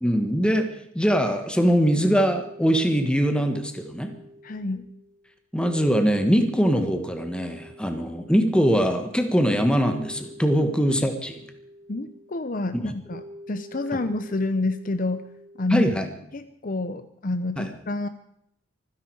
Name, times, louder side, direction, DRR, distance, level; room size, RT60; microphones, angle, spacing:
voice 1, 0.0-4.1 5.5-11.4 12.7-12.9 15.7-16.1 17.6-17.7, equal, 5° left, 6 dB, 1.5 m, -22 dB
sound 1, 2.0-16.2, equal, 25° left, 7.9 m, -46 dB
voice 2, 4.4-4.8 10.6-10.7 11.9-13.2 13.5-15.2 15.6-15.9 16.3-18.1, left 2 dB, 40° left, 11 dB, 0.7 m, -28 dB
25.0 x 10.5 x 4.8 m, 0.74 s
head